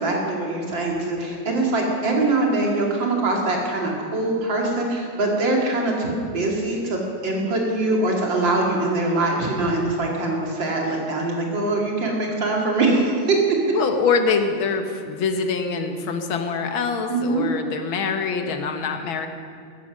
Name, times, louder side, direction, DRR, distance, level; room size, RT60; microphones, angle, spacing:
voice 1, 0.0-13.6 17.1-17.4, right 2 dB, 70° right, -1 dB, 3.2 m, -23 dB
voice 2, 13.7-19.3, left 5 dB, 90° left, 6 dB, 2.0 m, -24 dB
14.5 x 14.0 x 6.2 m, 2.2 s
omnidirectional pair, 2.1 m